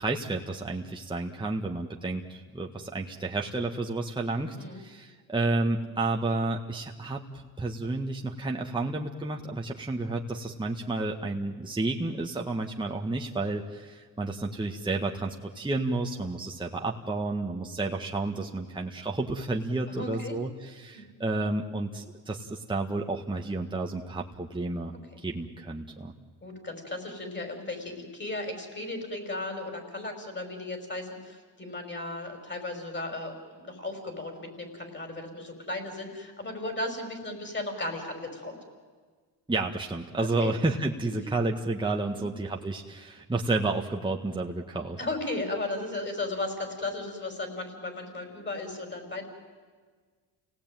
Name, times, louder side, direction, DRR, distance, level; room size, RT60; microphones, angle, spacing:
voice 1, 0.0-26.1 39.5-45.0, right 2 dB, 10° right, 0 dB, 1.7 m, -31 dB
voice 2, 19.9-20.3 20.9-21.1 26.4-38.6 40.2-40.5 42.1-42.3 45.0-49.3, left 2 dB, 25° left, 5 dB, 5.8 m, -35 dB
29.5 x 18.0 x 9.2 m, 1.5 s
cardioid pair, 90°, 43 cm